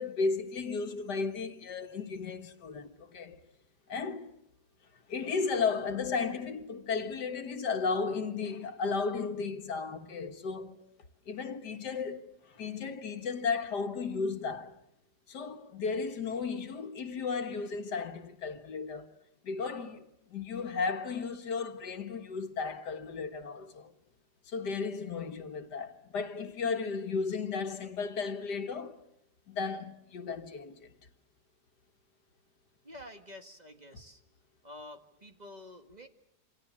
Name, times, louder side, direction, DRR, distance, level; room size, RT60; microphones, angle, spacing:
voice 1, 0.0-3.4 3.9-4.3 5.1-10.8 11.3-14.8 15.3-19.1 19.4-23.9 24.5-29.0 29.5-30.9, left 5 dB, 85° left, 2.0 m, -34 dB
voice 2, 32.8-34.2 34.6-36.1, left 1 dB, 25° right, 1.8 m, -49 dB
28.0 x 26.0 x 7.4 m
omnidirectional pair, 1.7 m